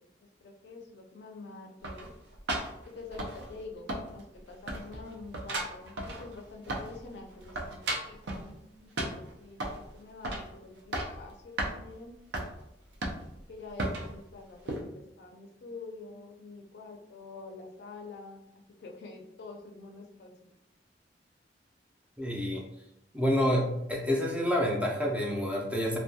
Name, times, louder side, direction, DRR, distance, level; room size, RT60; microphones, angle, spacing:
voice 1, 0.4-2.1 2.8-7.8 8.0-12.2 13.5-18.4 18.8-20.3, left 3 dB, 65° left, 2 dB, 0.4 m, -47 dB
sound 1, 1.8-3.6 3.9-4.4 4.7-7.1 7.3-8.5 9.0-9.9 10.2-10.5 10.8-11.2 11.6-11.8 12.3-12.5 13.0-13.4 13.8-14.1 14.7-14.8, right 1 dB, 70° right, 0.4 m, -35 dB
voice 2, 22.2-22.6 23.1-26.0, equal, 10° right, -2 dB, 0.4 m, -28 dB
2.2 x 2.2 x 2.6 m, 0.83 s
head